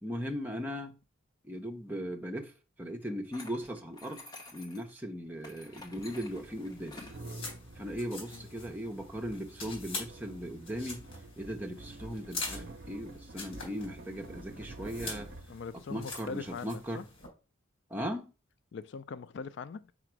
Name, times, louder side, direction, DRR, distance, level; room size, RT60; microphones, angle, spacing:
voice 1, 0.0-0.9 1.4-2.5 2.8-4.2 4.5-7.0 7.8-11.1 11.4-15.3 15.9-17.0 17.9-18.3, equal, 10° right, 0.8 m, -38 dB
sound 1, 3.3-4.9 5.4-7.2, left 2 dB, 20° left, 1.0 m, -50 dB
sound 2, 5.7-16.3, right 2 dB, 45° right, 0.6 m, -49 dB
sound 3, 6.0-17.3, left 3 dB, 85° left, 3.4 m, -45 dB
voice 2, 15.5-17.0 18.7-19.9, left 5 dB, 55° left, 0.3 m, -41 dB
5.0 x 4.9 x 4.6 m
head